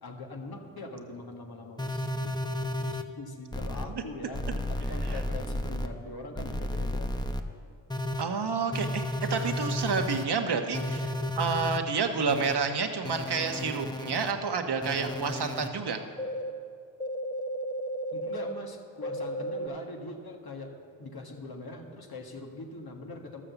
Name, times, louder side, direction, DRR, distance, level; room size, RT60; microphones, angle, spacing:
voice 1, 0.0-2.3 2.8-7.1 18.1-23.4, left 2 dB, 55° left, 2 dB, 1.8 m, -42 dB
sound 1, 1.8-3.0 3.5-3.8 4.3-5.9 6.3-7.4 7.9-8.2 8.7-10.2 10.7-11.8 12.3-12.5 13.0-14.3 14.8-15.7 16.2-16.5 17.0-18.5 19.0-19.7, equal, 10° left, 0.9 m, -33 dB
voice 2, 8.2-9.0 9.3-11.1 11.4-16.0, right 5 dB, 60° right, 6 dB, 1.1 m, -29 dB
12.0 x 7.3 x 7.0 m, 2.3 s
supercardioid pair, 40°, 45 cm